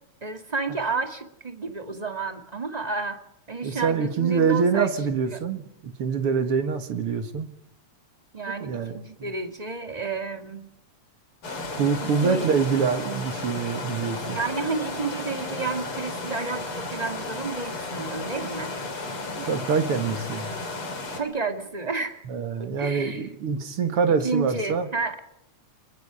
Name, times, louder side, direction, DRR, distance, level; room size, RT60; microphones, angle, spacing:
voice 1, 0.2-3.2 3.5-4.9 5.3-5.4 8.3-10.7 12.0-12.5 14.3-18.7 21.2-22.2 22.8-23.3 24.2-25.2, right 4 dB, 20° right, 6 dB, 1.4 m, -31 dB
voice 2, 3.6-7.5 8.6-8.9 9.2-9.3 11.8-14.4 19.4-20.5 22.3-24.9, right 5 dB, 50° right, 8 dB, 2.4 m, -25 dB
sound 1, 11.4-21.2, left 2 dB, 45° left, 4.2 m, -33 dB
28.0 x 21.5 x 5.0 m, 0.79 s
omnidirectional pair, 3.4 m